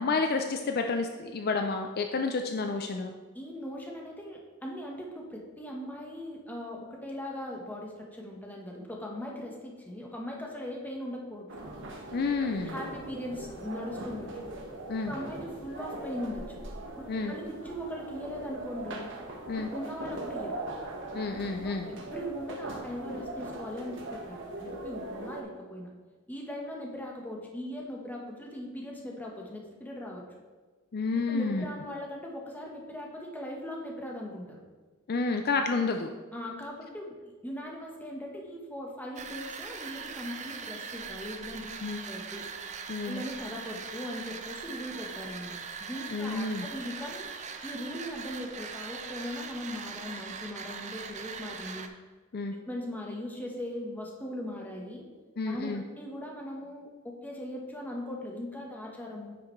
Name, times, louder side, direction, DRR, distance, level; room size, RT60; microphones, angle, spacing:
voice 1, 0.0-3.1 12.1-12.8 14.9-15.1 17.1-17.3 19.5-19.7 21.1-21.9 30.9-31.7 35.1-36.1 41.8-42.1 42.9-43.2 46.1-46.7 52.3-52.5 55.4-55.8, left 4 dB, 45° left, 5 dB, 0.4 m, -30 dB
voice 2, 3.3-11.5 12.4-14.5 15.0-16.6 17.0-19.1 19.5-20.6 21.6-25.9 26.3-30.2 31.3-34.6 36.3-37.2 37.4-41.7 42.0-42.5 43.1-47.3 47.6-51.9 52.6-55.1 55.4-59.3, left 1 dB, 10° left, -1 dB, 1.1 m, -39 dB
sound 1, 11.5-25.4, right 2 dB, 60° right, 1.2 m, -40 dB
sound 2, 39.2-51.9, right 5 dB, 35° right, 0.5 m, -41 dB
9.6 x 6.0 x 3.2 m, 1.4 s
head